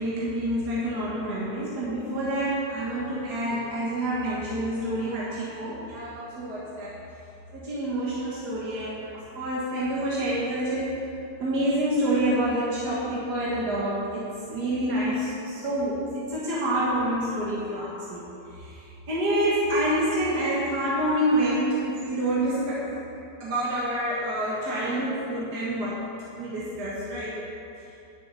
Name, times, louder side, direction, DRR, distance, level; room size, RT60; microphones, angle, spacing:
voice 1, 0.0-7.0 7.5-11.0 11.4-18.2 18.5-22.9 23.4-26.1 26.4-27.4 27.9-28.0, right 1 dB, 65° right, -7 dB, 2.0 m, -27 dB
10.5 x 9.3 x 4.1 m, 2.7 s
omnidirectional pair, 1.9 m